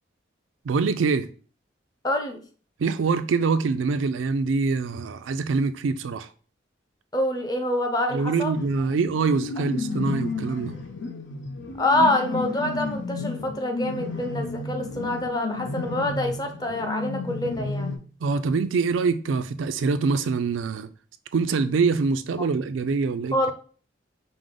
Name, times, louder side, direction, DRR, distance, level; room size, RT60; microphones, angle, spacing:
voice 1, 0.6-1.3 2.8-6.3 8.1-10.8 18.2-20.9 21.3-23.5, right 4 dB, 90° right, 0.4 m, -24 dB
voice 2, 2.0-2.4 7.1-8.6 11.8-17.9 22.4-22.5 23.3-23.5, left 1 dB, 20° left, 0.6 m, -26 dB
sound 1, 8.5-18.0, left 3 dB, 80° left, 0.6 m, -32 dB
4.9 x 2.1 x 3.8 m
head